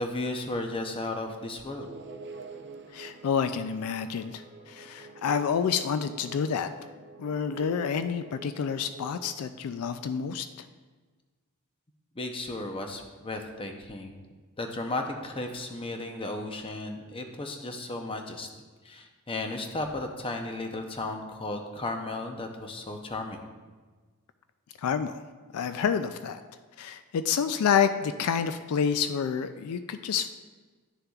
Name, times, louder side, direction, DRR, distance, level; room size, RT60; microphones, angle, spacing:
voice 1, 0.0-1.9 12.1-14.2 14.6-18.5 18.8-23.4, left 2 dB, 25° left, 4 dB, 0.7 m, -34 dB
sound 1, 1.7-9.3, right 4 dB, 50° right, 0.6 m, -46 dB
voice 2, 2.9-6.7 7.2-10.7 24.8-25.2 25.5-26.4 26.8-30.3, left 7 dB, 75° left, 10 dB, 0.3 m, -28 dB
11.0 x 6.6 x 2.4 m, 1.4 s
head